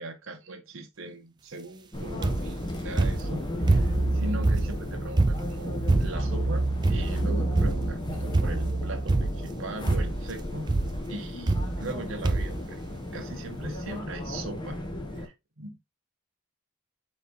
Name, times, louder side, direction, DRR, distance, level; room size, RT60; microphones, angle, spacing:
voice 1, 0.0-10.7 11.1-12.8 13.1-14.8 15.2-15.8, right 1 dB, 70° right, 0.9 m, -39 dB
sound 1, 1.9-15.3, left 1 dB, 20° left, 0.8 m, -35 dB
sound 2, 2.2-2.6 3.0-4.1 4.4-6.4 6.8-7.3 7.6-8.0 8.3-8.8 9.1-9.6 9.9-10.3 10.7-11.0 11.5-12.0 12.2-12.6 13.3-13.4 13.6-13.7, right 2 dB, 20° right, 0.3 m, -25 dB
sound 3, 3.6-9.1, right 2 dB, 90° right, 1.3 m, -30 dB
4.2 x 3.4 x 2.9 m
head